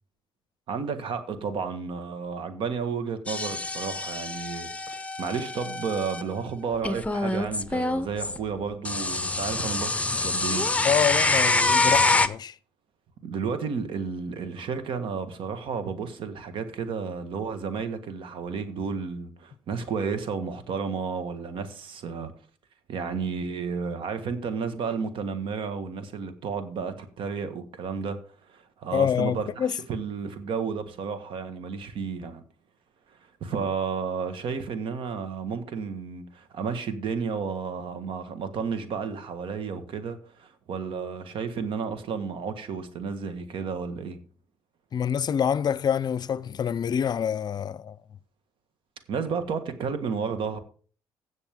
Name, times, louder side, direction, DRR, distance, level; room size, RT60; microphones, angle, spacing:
voice 1, 0.7-10.7 13.2-22.3 22.9-28.2 28.5-32.4 33.4-44.2 49.1-50.6, right 5 dB, 70° right, 1.5 m, -32 dB
sound 1, 3.3-6.2 6.8-8.4 8.8-12.3, left 3 dB, 15° left, 0.8 m, -26 dB
voice 2, 10.8-12.5 28.9-29.7 44.9-48.0, left 8 dB, 50° left, 0.5 m, -26 dB
16.0 x 6.4 x 3.6 m
supercardioid pair, 65°, 9 cm